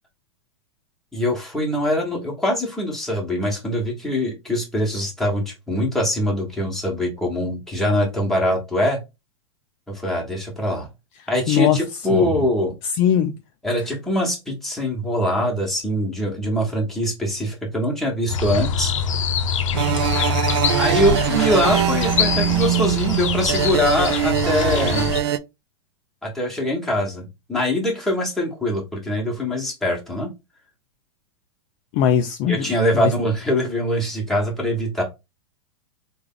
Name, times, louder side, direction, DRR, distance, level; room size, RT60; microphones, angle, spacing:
voice 1, 1.1-9.0 9.9-10.9 11.3-12.7 13.6-18.9 20.7-25.1 26.2-30.3 32.5-35.0, equal, ahead, 1.2 m, -23 dB
voice 2, 11.5-11.8 12.1-12.2 12.8-13.4 31.9-32.7 32.9-33.1, left 8 dB, 35° left, 0.4 m, -20 dB
sound 1, 18.3-25.2, left 6 dB, 80° left, 0.7 m, -24 dB
sound 2, 19.7-25.4, right 12 dB, 60° right, 0.4 m, -22 dB
3.4 x 2.3 x 3.6 m
hypercardioid pair, 145°, 16 cm